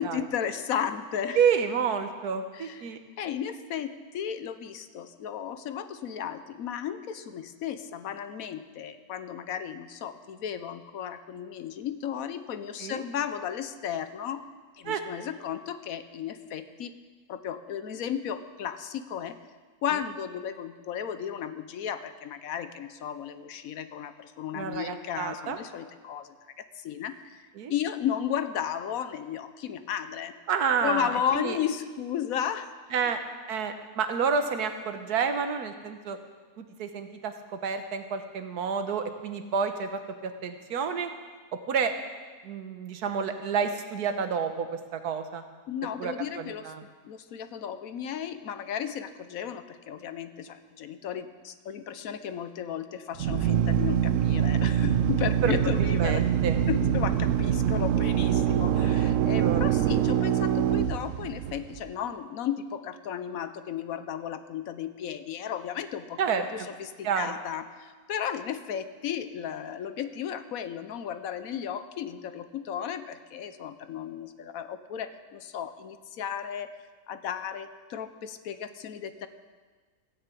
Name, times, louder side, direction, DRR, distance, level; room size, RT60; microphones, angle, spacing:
voice 1, 0.0-1.5 2.5-2.9 3.2-14.4 14.8-16.9 17.3-19.4 19.8-27.4 27.7-30.3 30.8-32.8 33.0-33.1 45.7-56.3 56.7-67.7 68.1-76.7 77.1-79.3, left 9 dB, 70° left, 11 dB, 1.1 m, -34 dB
voice 2, 1.3-3.0 12.8-13.0 14.9-15.0 24.5-25.6 27.6-27.7 30.5-31.6 32.9-33.2 33.5-36.2 36.6-37.3 37.6-41.1 41.7-41.9 42.4-45.4 46.0-46.8 55.4-55.5 55.8-56.6 59.4-59.6 66.2-66.4 67.0-67.3, right 6 dB, 85° right, 8 dB, 1.5 m, -29 dB
Drill, 53.1-61.8, right 9 dB, 65° right, 0.8 m, -24 dB
15.0 x 6.7 x 8.3 m, 1.4 s
omnidirectional pair, 1.6 m